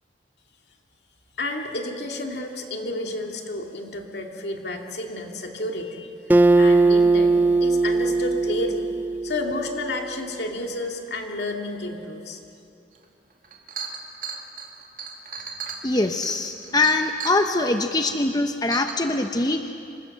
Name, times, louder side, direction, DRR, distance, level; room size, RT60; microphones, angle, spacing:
voice 1, 1.4-6.2 6.6-8.9 9.2-12.4, left 2 dB, 65° left, 2 dB, 2.5 m, -31 dB
Acoustic guitar, 6.3-9.8, right 3 dB, 10° right, 0.5 m, -19 dB
Chink clink, 13.0-13.1 13.4-17.4 18.2-18.3 18.7-18.9, right 5 dB, 50° right, 2.3 m, -35 dB
voice 2, 15.8-19.7, left 2 dB, 20° left, 6 dB, 0.7 m, -23 dB
27.0 x 24.0 x 6.7 m, 2.7 s
head